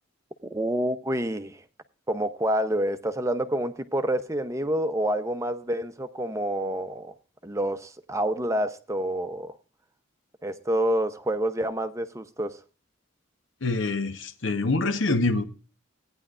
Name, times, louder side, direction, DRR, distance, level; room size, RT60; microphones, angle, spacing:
voice 1, 0.4-1.6 2.1-7.1 7.4-9.5 10.4-12.6, right 1 dB, 15° right, 0.6 m, -28 dB
voice 2, 13.6-15.4, left 3 dB, 75° left, 1.0 m, -25 dB
17.0 x 9.7 x 2.4 m
head